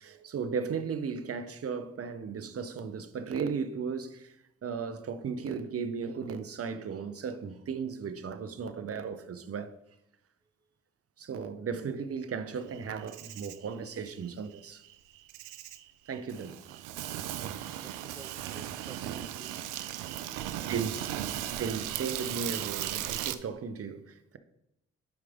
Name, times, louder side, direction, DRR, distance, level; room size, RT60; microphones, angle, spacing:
voice 1, 0.0-4.3 4.6-9.7 11.2-14.8 16.1-16.5 20.6-21.0 21.6-24.4, right 6 dB, 50° right, 0.9 m, -36 dB
Insect, 12.7-23.4, right 12 dB, 80° right, 0.5 m, -37 dB
voice 2, 17.8-19.6 20.4-20.9, right 1 dB, 10° right, 1.1 m, -52 dB
11.0 x 4.9 x 3.6 m
hypercardioid pair, 45°, 31 cm